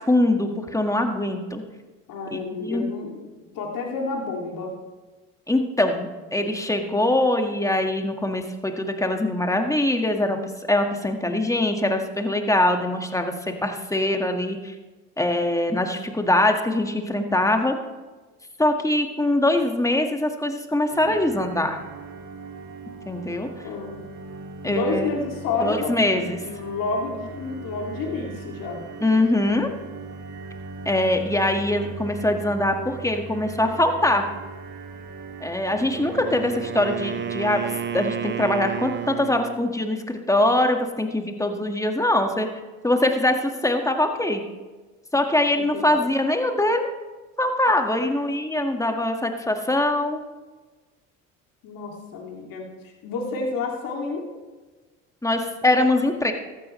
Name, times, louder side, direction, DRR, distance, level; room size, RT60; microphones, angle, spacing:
voice 1, 0.1-1.6 2.3-2.9 5.5-14.7 15.2-17.8 18.6-21.8 23.1-23.5 24.6-25.1 25.6-26.4 29.0-29.7 30.9-34.3 35.4-42.5 42.8-44.4 45.1-46.8 47.4-50.2 55.2-56.3, left 1 dB, 10° left, 4 dB, 1.7 m, -23 dB
voice 2, 2.1-3.1 3.5-4.7 23.6-24.0 24.6-28.8 45.5-45.9 51.6-54.3, left 4 dB, 60° left, 0 dB, 2.5 m, -30 dB
sound 1, 20.9-39.2, right 4 dB, 50° right, 2.3 m, -39 dB
Wind instrument woodwind instrument, 35.7-39.6, right 8 dB, 30° right, 0.9 m, -31 dB
14.5 x 12.5 x 3.2 m, 1.3 s
hypercardioid pair, 65°, 37 cm